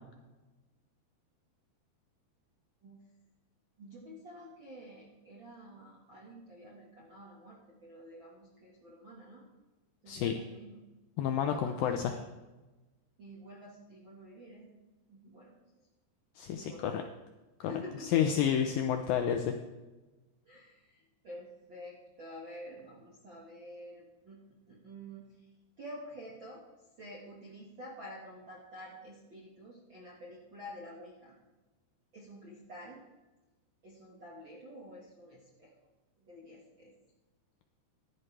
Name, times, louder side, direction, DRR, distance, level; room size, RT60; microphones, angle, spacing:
voice 1, 3.8-9.5 10.0-10.8 11.4-12.2 13.2-14.8 15.1-15.9 16.5-17.0 17.6-18.2 20.4-25.5 25.8-26.6 27.0-31.4 32.1-33.0 33.8-35.7 36.2-36.9, equal, 50° right, -5 dB, 1.4 m, -49 dB
voice 2, 11.2-12.1 16.4-17.0 17.6-17.7 18.1-19.5, left 9 dB, 80° left, 5 dB, 2.0 m, -29 dB
15.0 x 11.5 x 3.3 m, 1.1 s
omnidirectional pair, 4.7 m